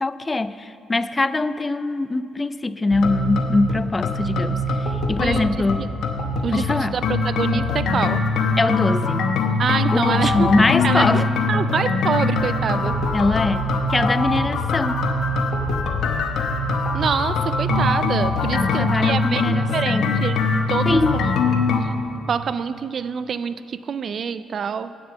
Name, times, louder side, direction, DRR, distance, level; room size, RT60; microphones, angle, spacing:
voice 1, 0.0-5.9 6.5-7.0 8.6-9.3 9.9-11.2 13.1-15.0 18.5-20.2 20.9-21.2, left 2 dB, 25° left, 14 dB, 0.3 m, -22 dB
sound 1, 2.9-21.8, left 3 dB, 70° left, 0.9 m, -22 dB
voice 2, 5.2-5.9 6.4-8.2 9.6-10.5 10.8-12.9 16.9-20.4 20.7-21.3 21.8-21.9 22.3-24.9, right 6 dB, 55° right, 14 dB, 0.3 m, -26 dB
8.7 x 6.8 x 7.0 m, 2.5 s
supercardioid pair, 70°, 0 cm